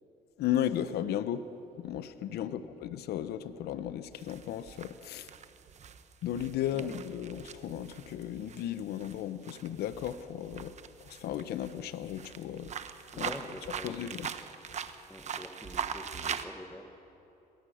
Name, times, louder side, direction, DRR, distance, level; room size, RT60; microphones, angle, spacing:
voice 1, 0.4-1.4 1.8-5.3 6.2-10.8 11.1-12.7 13.2-13.3 13.8-14.3, left 11 dB, 75° left, 13 dB, 0.9 m, -35 dB
voice 2, 2.4-2.8 6.7-7.0 13.1-14.3 15.1-17.0, left 1 dB, 5° left, 7 dB, 1.6 m, -46 dB
sound 1, 4.1-16.4, right 7 dB, 45° right, 1.0 m, -41 dB
21.5 x 19.0 x 6.4 m, 3.0 s
cardioid pair, 110°, 17 cm